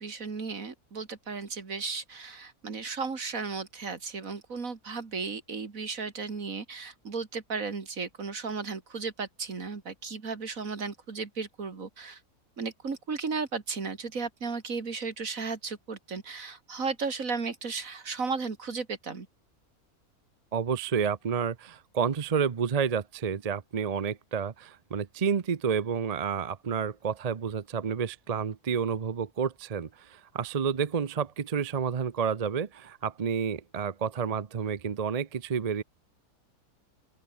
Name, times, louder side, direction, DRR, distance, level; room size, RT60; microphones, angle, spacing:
voice 1, 0.0-12.2 12.6-19.3, right 4 dB, 60° right, 2.7 m, -35 dB
voice 2, 20.5-35.8, right 6 dB, 40° right, 0.6 m, -30 dB
open air
omnidirectional pair, 1.6 m